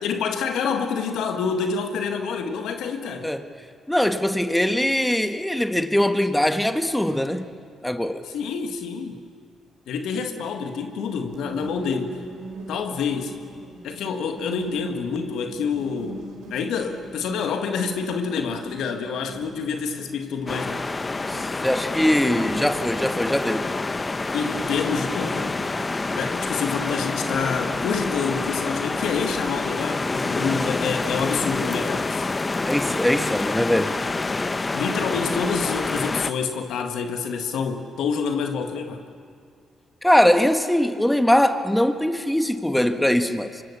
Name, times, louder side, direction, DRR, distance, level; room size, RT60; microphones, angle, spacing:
voice 1, 0.0-3.3 8.2-9.2 9.9-12.2 12.7-13.4 13.8-16.2 16.5-20.8 24.3-25.6 26.2-32.3 34.7-39.0, left 5 dB, 75° left, 5 dB, 1.8 m, -27 dB
voice 2, 3.9-7.5 7.8-8.2 21.3-23.7 32.7-33.9 40.0-43.6, left 1 dB, 5° left, 7 dB, 1.6 m, -21 dB
sound 1, 11.0-30.4, right 2 dB, 80° right, 4.6 m, -44 dB
sound 2, 20.5-36.3, left 3 dB, 30° left, 1.0 m, -27 dB
25.0 x 24.0 x 7.1 m, 2.1 s
supercardioid pair, 50°, 0 cm